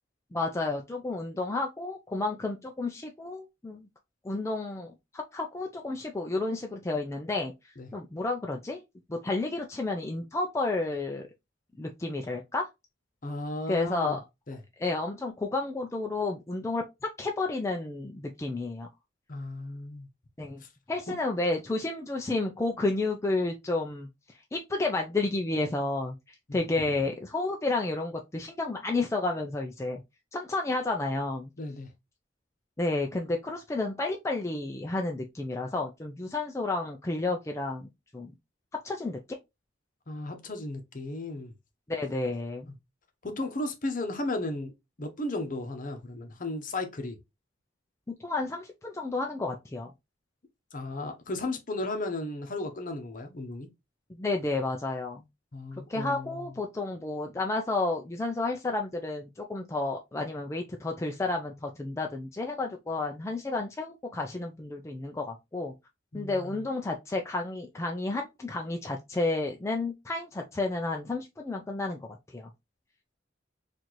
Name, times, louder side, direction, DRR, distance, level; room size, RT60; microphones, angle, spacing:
voice 1, 0.3-3.9 4.2-7.5 7.9-8.8 9.1-11.3 11.8-12.7 13.7-14.2 14.8-16.8 17.2-18.9 20.4-20.6 20.9-26.2 26.5-30.0 30.3-31.5 32.8-38.3 38.8-39.2 41.9-42.7 48.1-49.9 54.2-55.2 55.9-65.7 66.1-72.0 72.3-72.5, left 2 dB, 15° left, 0.4 m, -31 dB
voice 2, 13.2-14.2 14.5-14.6 19.3-20.1 26.5-26.6 31.6-31.9 40.1-41.5 42.7-42.8 43.2-44.7 45.0-47.2 50.7-53.7 55.5-56.4 66.1-66.6, left 2 dB, 45° left, 0.8 m, -35 dB
4.3 x 2.5 x 2.9 m
head